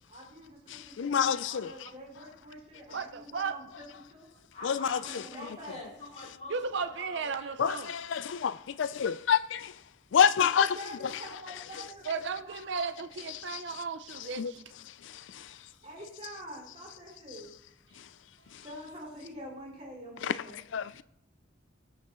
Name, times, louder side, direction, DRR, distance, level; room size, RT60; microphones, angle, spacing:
voice 1, 0.1-3.8 4.1-4.3 5.0-5.9 10.5-12.7 15.8-17.5 18.6-20.6, equal, 35° right, 4.0 m, -46 dB
voice 2, 0.7-1.9 4.6-5.0 7.6-9.7 10.1-10.8 11.0-11.1 13.5-13.6 14.4-14.5 20.2-20.4 20.7-20.9, left 7 dB, 75° left, 0.4 m, -27 dB
voice 3, 2.9-3.6 6.5-7.9 12.0-14.7, right 5 dB, 70° right, 0.6 m, -35 dB
voice 4, 4.5-7.6, left 2 dB, 35° left, 4.5 m, -46 dB
20.0 x 6.7 x 3.1 m
head